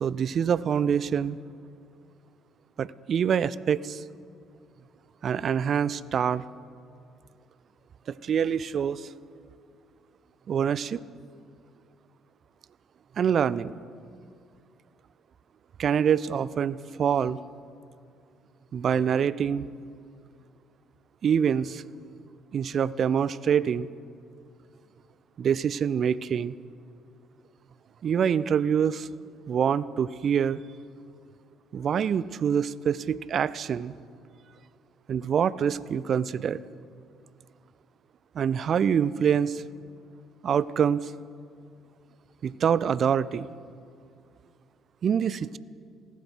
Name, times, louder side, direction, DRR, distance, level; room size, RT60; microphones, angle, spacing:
voice 1, 0.0-1.4 2.8-4.0 5.2-6.4 8.2-9.1 10.5-11.0 13.2-13.7 15.8-17.4 18.7-19.7 21.2-21.8 22.5-23.9 25.4-26.5 28.0-29.1 29.5-30.6 31.7-33.9 35.1-36.6 38.4-39.6 40.4-41.1 42.4-43.5 45.0-45.6, right 8 dB, 45° right, 19 dB, 0.3 m, -25 dB
15.5 x 13.0 x 4.5 m, 2.3 s
figure-of-eight pair, 50°, 0 cm